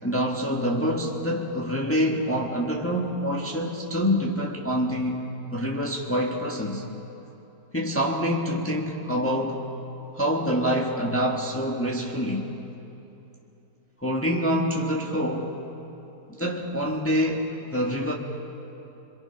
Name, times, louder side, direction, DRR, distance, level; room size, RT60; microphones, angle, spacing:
voice 1, 0.0-5.2 5.5-6.8 7.7-9.6 10.1-12.5 14.0-15.5 16.4-18.1, equal, 10° left, -1 dB, 1.5 m, -26 dB
27.5 x 22.5 x 5.8 m, 2.9 s
omnidirectional pair, 1.6 m